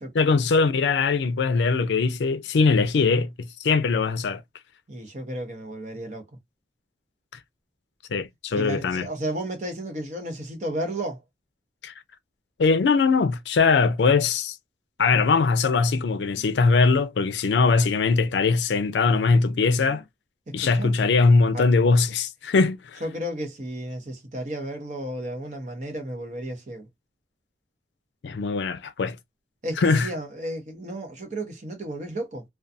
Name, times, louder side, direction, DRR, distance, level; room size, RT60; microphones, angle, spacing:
voice 1, 0.1-4.4 8.1-9.1 11.8-11.9 12.6-14.6 15.0-20.0 20.5-23.0 28.2-29.2 29.8-30.1, left 4 dB, 80° left, 0.4 m, -21 dB
voice 2, 4.9-6.2 8.5-11.2 20.5-21.0 21.5-21.7 23.0-26.9 29.6-32.4, right 1 dB, 40° right, 0.8 m, -33 dB
2.4 x 2.3 x 2.5 m
head